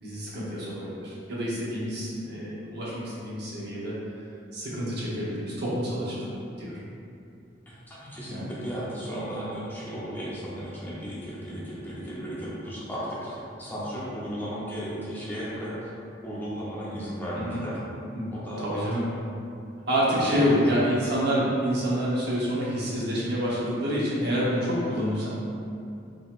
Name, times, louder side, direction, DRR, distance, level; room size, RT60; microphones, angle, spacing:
voice 1, 0.0-3.9 4.5-6.3 6.6-6.8 8.3-8.4 17.4-17.6 18.2-18.3 18.6-19.0 19.9-25.3, equal, 60° right, -7 dB, 0.9 m, -27 dB
voice 2, 7.7-15.9 16.2-17.8 18.3-18.8 20.2-20.9, equal, 10° left, -8 dB, 0.6 m, -35 dB
3.7 x 2.9 x 2.4 m, 2.6 s
head